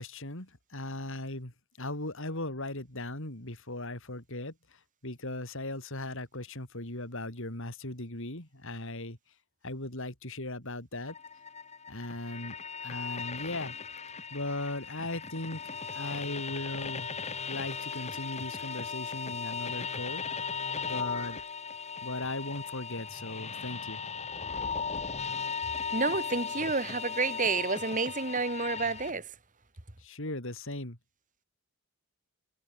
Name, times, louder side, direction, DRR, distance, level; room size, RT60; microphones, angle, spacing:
voice 1, 0.0-9.2 9.6-11.1 11.9-12.5 12.8-13.7 14.3-17.1 17.5-20.2 20.9-21.4 22.0-24.0 30.0-31.0, left 2 dB, 60° left, 4.9 m, -38 dB
sound 1, 11.0-29.1, left 5 dB, 30° left, 3.4 m, -37 dB
voice 2, 25.9-29.3, right 4 dB, 35° right, 2.9 m, -30 dB
head